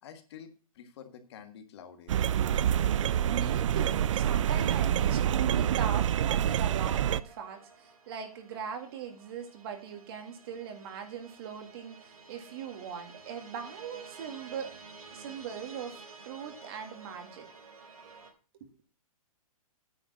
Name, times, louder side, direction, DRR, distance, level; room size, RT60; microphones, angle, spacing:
voice 1, 0.0-2.3, left 8 dB, 45° left, 7 dB, 1.6 m, -49 dB
sound 1, 2.1-7.2, right 10 dB, 60° right, 0.5 m, -27 dB
voice 2, 3.3-14.7 15.1-17.5 18.5-18.7, right 7 dB, 45° right, 6 dB, 2.0 m, -40 dB
sound 2, 6.6-18.3, right 4 dB, 90° right, 3.4 m, -52 dB
9.4 x 5.2 x 7.2 m, 0.35 s
hypercardioid pair, 160°, 18 cm